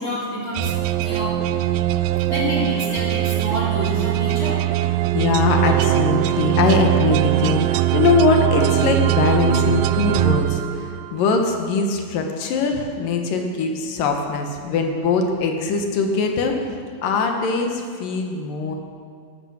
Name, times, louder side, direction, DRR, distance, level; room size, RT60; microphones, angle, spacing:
voice 1, 0.0-1.4 2.3-4.6, equal, 25° left, -6 dB, 3.8 m, -28 dB
sound 1, 0.6-11.2, right 14 dB, 90° right, 2.4 m, -21 dB
voice 2, 5.1-16.6 17.0-18.8, left 4 dB, 75° left, 3 dB, 3.0 m, -21 dB
14.5 x 12.0 x 6.4 m, 2.2 s
omnidirectional pair, 4.0 m